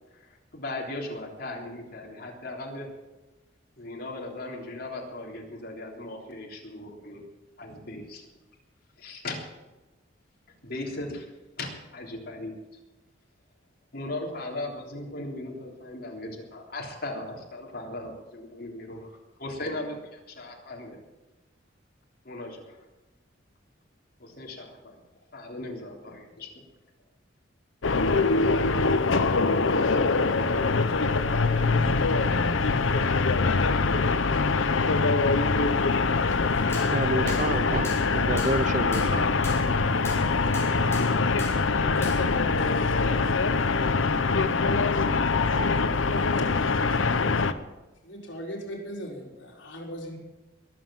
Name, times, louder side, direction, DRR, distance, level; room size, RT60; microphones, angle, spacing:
voice 1, 0.1-2.9 3.8-7.2 7.6-8.3 9.0-9.4 10.6-11.3 11.6-12.5 13.9-19.1 19.4-21.0 22.2-22.8 24.2-25.0 25.3-26.5, left 2 dB, 50° left, 3.4 m, -37 dB
sound 1, 27.8-47.5, left 4 dB, 85° left, 0.9 m, -23 dB
sound 2, 36.3-42.4, left 2 dB, 15° left, 3.7 m, -43 dB
voice 2, 36.9-39.3, right 2 dB, 40° right, 0.6 m, -29 dB
voice 3, 46.8-47.3 48.0-50.2, equal, 70° left, 4.3 m, -39 dB
21.5 x 7.7 x 7.5 m
head